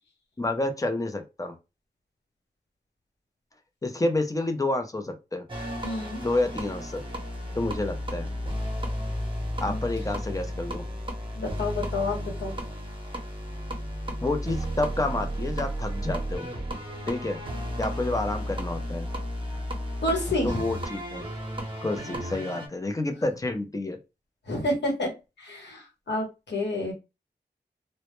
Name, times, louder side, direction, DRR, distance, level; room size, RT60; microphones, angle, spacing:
voice 1, 0.4-1.6 3.8-5.4 6.2-7.0 7.6-8.3 9.6-10.9 14.2-16.5 17.1-17.4 17.8-19.1 20.4-21.2 21.8-24.0, left 2 dB, 20° left, 6 dB, 0.4 m, -29 dB
sound 1, 5.5-22.7, equal, 30° right, 0.7 m, -33 dB
voice 2, 5.8-6.2 9.7-9.8 11.4-12.5 20.0-20.6 24.5-25.1 25.4-26.9, left 1 dB, 90° left, 1 dB, 0.9 m, -29 dB
2.1 x 2.0 x 2.9 m, 0.26 s
wide cardioid pair, 95°, 18 cm